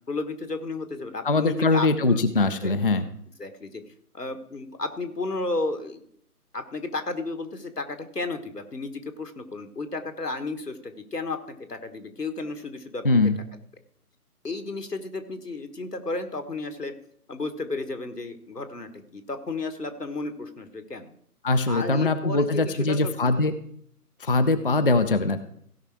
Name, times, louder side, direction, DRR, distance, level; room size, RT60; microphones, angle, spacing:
voice 1, 0.1-2.3 2.6-3.0 3.4-3.8 4.1-6.0 6.5-13.2 14.4-16.9 17.3-21.1 21.7-23.1, left 3 dB, 85° left, 8 dB, 1.5 m, -33 dB
voice 2, 1.2-3.1 13.0-13.4 21.4-23.5 24.2-25.4, left 3 dB, 40° left, 9 dB, 0.5 m, -22 dB
16.5 x 5.6 x 4.8 m, 0.66 s
figure-of-eight pair, 145°, 46 cm